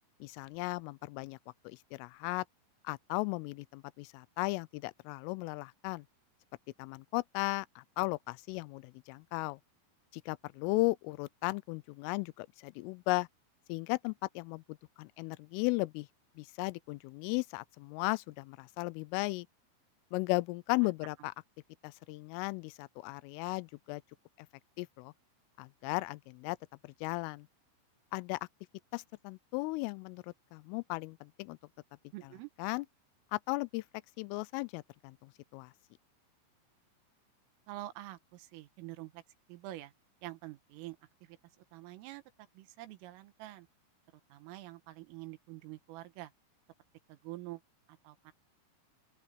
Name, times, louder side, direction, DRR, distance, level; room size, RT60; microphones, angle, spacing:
voice 1, 0.2-1.4 1.6-2.4 2.8-6.0 6.8-9.6 10.1-13.3 13.7-16.1 16.4-19.5 20.1-21.3 21.8-24.0 24.8-25.1 25.6-26.6 26.8-27.5 28.1-28.4 28.9-31.6 32.6-32.8 33.3-33.8 34.2-35.7, left 24 dB, 85° left, 3.2 m, -36 dB
voice 2, 32.1-32.5 37.7-39.2 39.5-39.9 40.2-42.2 42.5-43.7 44.3-46.3 47.1-47.6 47.9-48.3, right 16 dB, 85° right, 3.9 m, -47 dB
open air
omnidirectional pair, 5.8 m